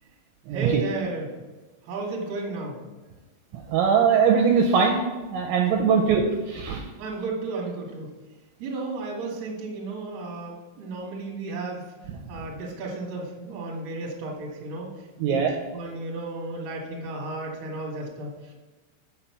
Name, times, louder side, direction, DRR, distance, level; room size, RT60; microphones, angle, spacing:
voice 1, 0.5-1.3 1.8-2.8 5.9-6.0 7.0-8.1 8.6-11.9 12.3-14.9 15.2-15.4 15.7-18.5, right 3 dB, 50° right, -2 dB, 2.3 m, -33 dB
voice 2, 3.7-5.0 5.3-6.2 6.5-6.8 15.2-15.5, right 6 dB, 80° right, 2 dB, 2.9 m, -21 dB
7.4 x 5.8 x 7.1 m, 1.2 s
omnidirectional pair, 5.8 m